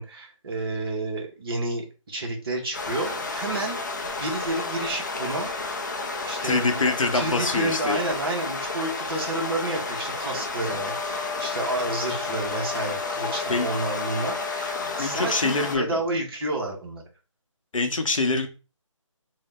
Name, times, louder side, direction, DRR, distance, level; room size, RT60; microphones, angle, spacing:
voice 1, 0.0-3.8 4.2-5.5 6.2-6.8 7.1-17.0, right 2 dB, 45° right, 0 dB, 0.9 m, -30 dB
sound 1, 2.7-15.8, left 3 dB, 35° left, 0.4 m, -31 dB
voice 2, 6.4-8.0 13.5-13.7 15.0-16.0 17.7-18.5, left 3 dB, 75° left, 6 dB, 0.7 m, -25 dB
Wind instrument woodwind instrument, 10.6-15.1, left 8 dB, 5° right, 1.1 m, -35 dB
2.8 x 2.1 x 3.3 m, 0.32 s
figure-of-eight pair, 155°, 17 cm